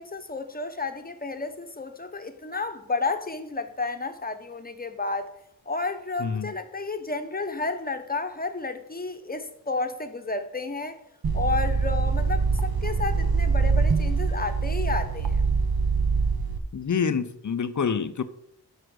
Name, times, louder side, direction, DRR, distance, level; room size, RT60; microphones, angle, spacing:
voice 1, 0.0-5.3 5.7-11.0 11.3-15.5, left 3 dB, 25° left, 1.1 m, -31 dB
voice 2, 6.2-6.5 16.7-18.2, left 6 dB, 50° left, 0.7 m, -27 dB
sound 1, 11.2-16.6, right 4 dB, 65° right, 1.0 m, -24 dB
8.0 x 5.0 x 6.2 m
cardioid pair, 60°, 39 cm